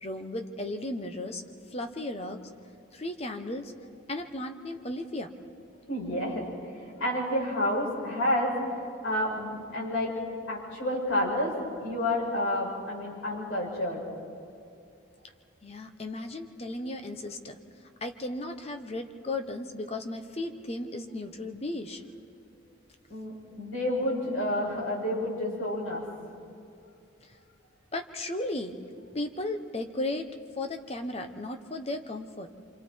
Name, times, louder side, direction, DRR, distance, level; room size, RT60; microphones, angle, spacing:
voice 1, 0.0-1.4 1.7-2.4 2.9-3.7 4.1-5.3 15.6-17.6 18.0-22.0 27.9-28.8 29.1-30.3 30.6-32.5, left 2 dB, 30° left, 6 dB, 1.1 m, -35 dB
voice 2, 5.9-6.5 6.7-8.5 8.8-10.1 10.5-14.1 23.1-26.1, left 1 dB, 85° left, -5 dB, 7.1 m, -30 dB
26.5 x 26.0 x 4.7 m, 2.5 s
head